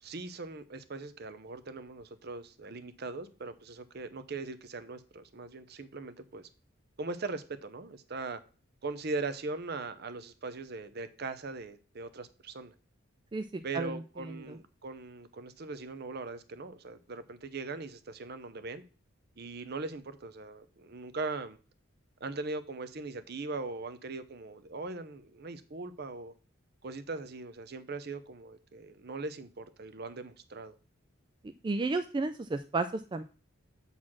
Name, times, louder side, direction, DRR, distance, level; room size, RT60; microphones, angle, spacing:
voice 1, 0.0-6.5 7.0-8.4 8.8-12.7 13.6-18.8 19.4-21.6 22.2-26.3 26.8-30.7, right 3 dB, 50° right, 0.7 m, -40 dB
voice 2, 31.6-33.2, right 3 dB, 25° right, 0.3 m, -31 dB
7.4 x 4.1 x 6.3 m
head